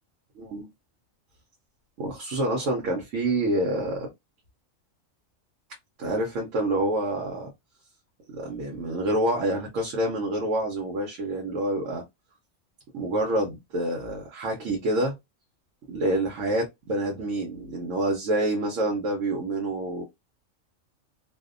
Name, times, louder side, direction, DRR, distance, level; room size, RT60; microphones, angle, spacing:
voice 1, 0.4-0.7 2.0-4.1 6.0-7.5 8.4-12.0 12.9-15.1 15.9-20.0, right 1 dB, 75° right, 1.0 m, -27 dB
2.6 x 2.0 x 2.4 m
omnidirectional pair, 1.4 m